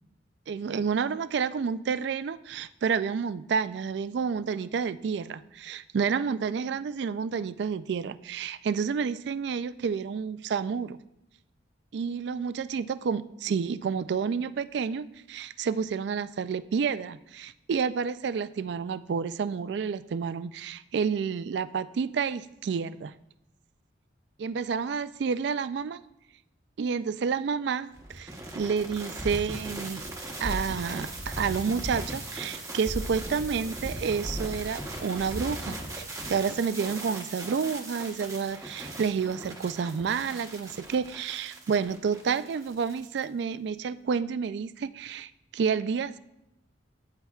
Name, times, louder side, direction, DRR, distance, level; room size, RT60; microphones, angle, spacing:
voice 1, 0.5-11.0 11.9-23.1 24.4-26.0 26.8-30.0 30.4-46.2, right 6 dB, 60° right, 14 dB, 0.3 m, -30 dB
sound 1, 28.0-43.2, right 1 dB, 15° right, 0.9 m, -38 dB
16.5 x 5.7 x 2.4 m, 0.87 s
head